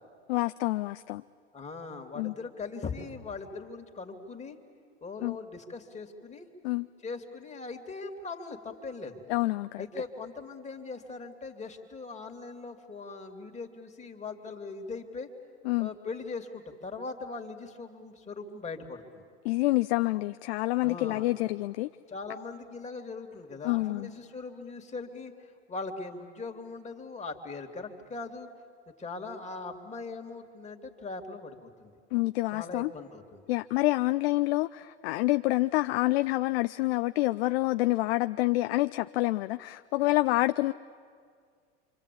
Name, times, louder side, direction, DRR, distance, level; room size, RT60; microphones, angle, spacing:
voice 1, 0.3-1.2 2.2-2.3 5.2-5.4 6.6-6.9 9.3-9.8 15.6-15.9 19.4-21.9 23.6-24.1 32.1-32.9 33.5-40.7, left 19 dB, 60° left, 11 dB, 0.6 m, -27 dB
voice 2, 1.5-4.6 5.0-6.5 7.0-9.2 9.8-15.3 15.8-19.2 20.8-21.3 22.1-28.5 29.0-31.9 32.5-33.4, left 4 dB, 20° left, 4 dB, 2.7 m, -40 dB
27.0 x 25.0 x 8.5 m, 2.1 s
hypercardioid pair, 95°, 35 cm